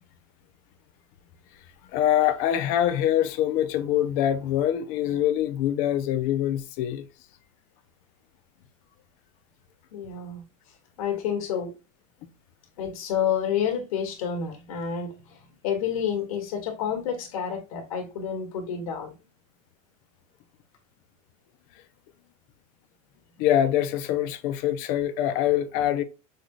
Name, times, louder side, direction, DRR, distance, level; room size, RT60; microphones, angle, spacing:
voice 1, 1.9-7.0 23.4-26.0, left 11 dB, 45° left, 0.7 m, -24 dB
voice 2, 9.9-10.4 11.0-11.8 12.8-19.2 25.7-25.8, left 8 dB, 80° left, 2.1 m, -29 dB
6.3 x 3.2 x 2.4 m
supercardioid pair, 155°, 18 cm